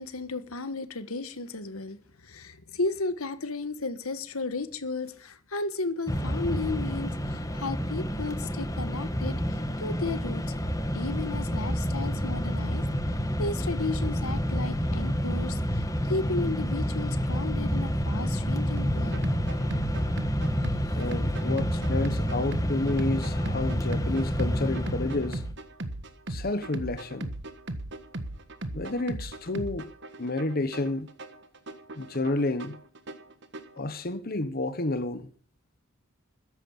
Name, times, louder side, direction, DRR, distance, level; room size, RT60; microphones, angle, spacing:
voice 1, 0.0-10.4 10.9-12.8 13.4-19.2 21.4-21.5, left 3 dB, 85° left, 1.5 m, -34 dB
Mechanisms, 6.1-25.5, equal, 15° left, 1.4 m, -29 dB
sound 1, 18.8-33.8, right 1 dB, 55° right, 1.5 m, -38 dB
voice 2, 20.9-25.4 26.3-27.3 28.7-29.9 30.2-31.1 32.0-32.8 33.8-35.3, left 2 dB, 45° left, 1.1 m, -30 dB
14.0 x 11.0 x 7.2 m
head